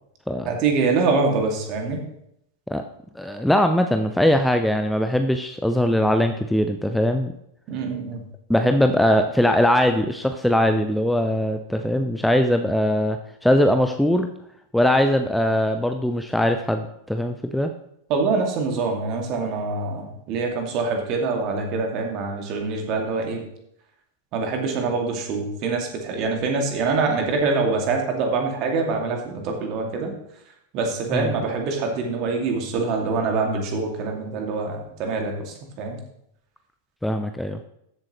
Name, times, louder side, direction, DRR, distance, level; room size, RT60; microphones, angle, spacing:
voice 1, 0.5-2.0 7.7-8.2 18.1-23.5 24.3-30.1 30.7-36.0, right 4 dB, 40° right, 2 dB, 2.3 m, -25 dB
voice 2, 3.2-7.3 8.5-14.3 14.7-17.7 31.1-31.3 37.0-37.6, left 1 dB, ahead, 7 dB, 0.6 m, -21 dB
14.0 x 7.5 x 3.1 m, 0.77 s
figure-of-eight pair, 90°, 0 cm